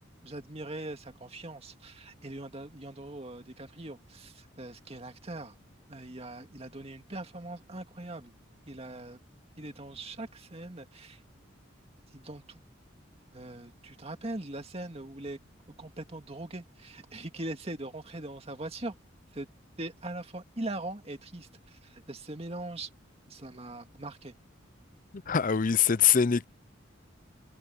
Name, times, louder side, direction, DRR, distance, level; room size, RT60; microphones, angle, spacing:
voice 1, 0.2-5.6 5.9-8.3 8.7-9.2 9.6-11.2 12.1-12.6 13.3-15.4 15.8-19.0 19.3-19.5 19.8-22.9 23.3-24.3, right 2 dB, 30° right, 2.2 m, -41 dB
voice 2, 25.3-26.5, left 7 dB, 45° left, 0.6 m, -23 dB
head